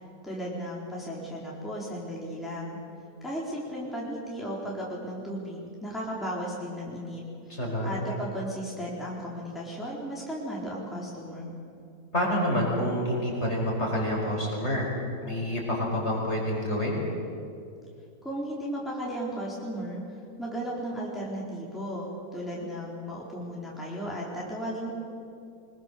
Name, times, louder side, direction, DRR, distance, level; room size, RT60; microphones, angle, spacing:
voice 1, 0.2-2.8 3.2-11.5 18.2-20.0 20.4-24.9, equal, ahead, -5 dB, 4.0 m, -35 dB
voice 2, 7.5-8.2 12.1-14.9 15.2-17.0, equal, 40° left, -2 dB, 5.2 m, -28 dB
24.5 x 21.5 x 6.9 m, 2.5 s
omnidirectional pair, 1.9 m